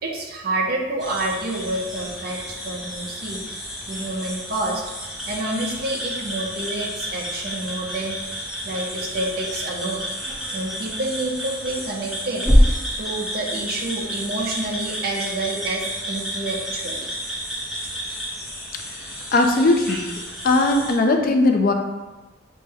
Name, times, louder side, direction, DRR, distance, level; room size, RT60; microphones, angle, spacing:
voice 1, 0.0-8.2 8.6-10.1 10.5-17.1, right 2 dB, 50° right, 0 dB, 0.7 m, -28 dB
sound 1, 1.0-21.0, equal, ahead, 0.6 m, -28 dB
voice 2, 18.9-20.0 20.4-21.7, left 2 dB, 50° left, 4 dB, 0.4 m, -19 dB
6.3 x 2.2 x 3.4 m, 1.1 s
head